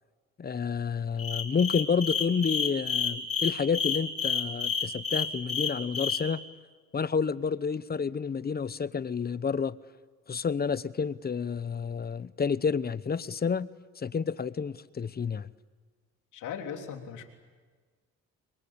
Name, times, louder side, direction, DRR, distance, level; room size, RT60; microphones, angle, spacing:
voice 1, 0.4-6.4 6.9-9.8 10.3-13.7 14.0-15.5, left 6 dB, 30° left, 17 dB, 0.9 m, -30 dB
sound 1, 1.2-6.2, left 6 dB, 50° left, 4.9 m, -29 dB
voice 2, 16.3-17.2, left 7 dB, 85° left, 4 dB, 3.4 m, -38 dB
28.5 x 22.5 x 8.7 m, 1.5 s
cardioid pair, 90°, 30 cm